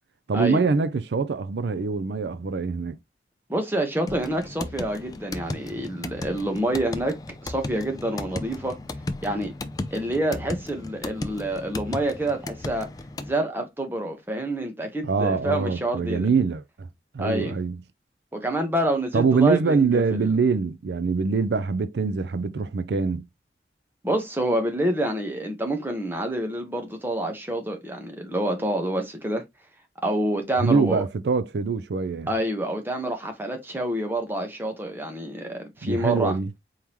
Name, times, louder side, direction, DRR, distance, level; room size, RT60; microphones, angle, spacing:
voice 1, 0.3-3.0 15.0-16.9 17.1-17.8 19.1-23.2 30.6-32.3 35.8-36.5, right 4 dB, 75° right, 0.4 m, -24 dB
voice 2, 3.5-7.2 7.4-8.8 9.2-9.5 9.9-12.9 13.2-16.3 17.2-17.6 18.3-20.3 24.0-29.4 30.0-31.0 32.3-36.4, right 1 dB, 10° right, 1.0 m, -27 dB
sound 1, 4.1-13.3, left 2 dB, 20° left, 0.4 m, -35 dB
4.5 x 3.6 x 3.0 m
head